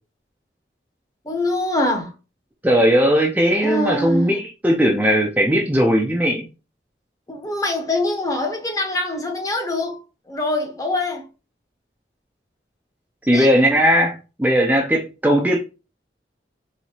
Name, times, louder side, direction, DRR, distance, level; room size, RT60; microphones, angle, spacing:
voice 1, 1.2-2.1 3.6-4.4 7.3-10.0 10.3-11.3 13.3-13.5, left 2 dB, 20° left, 0.8 m, -24 dB
voice 2, 2.6-6.5 13.3-15.6, equal, 10° right, 0.5 m, -18 dB
4.3 x 2.8 x 2.8 m
head